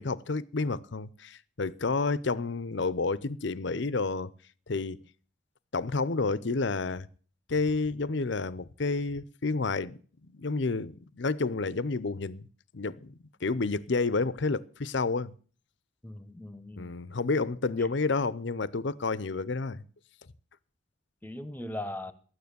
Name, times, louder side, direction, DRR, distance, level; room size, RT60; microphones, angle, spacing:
voice 1, 0.0-4.3 4.7-5.0 5.7-7.1 7.5-10.0 10.3-12.5 12.7-13.1 13.4-15.3 16.8-19.8, left 3 dB, 60° left, 0.7 m, -30 dB
voice 2, 16.0-16.9 17.8-17.9 21.2-22.1, left 1 dB, 10° left, 1.1 m, -39 dB
13.0 x 9.5 x 6.8 m
head